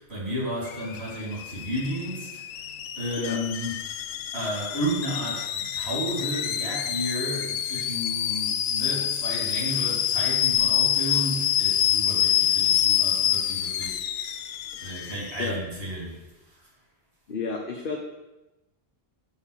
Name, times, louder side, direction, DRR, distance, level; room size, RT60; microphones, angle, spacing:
voice 1, 0.0-2.4 3.0-4.1 4.3-14.0 14.8-16.7, equal, 60° right, -5 dB, 3.6 m, -32 dB
Alarm / Boiling, 0.7-15.5, left 10 dB, 80° left, 0.9 m, -27 dB
voice 2, 17.3-18.0, left 4 dB, 50° left, 1 dB, 1.1 m, -31 dB
9.0 x 4.3 x 7.3 m, 1.0 s
omnidirectional pair, 1.2 m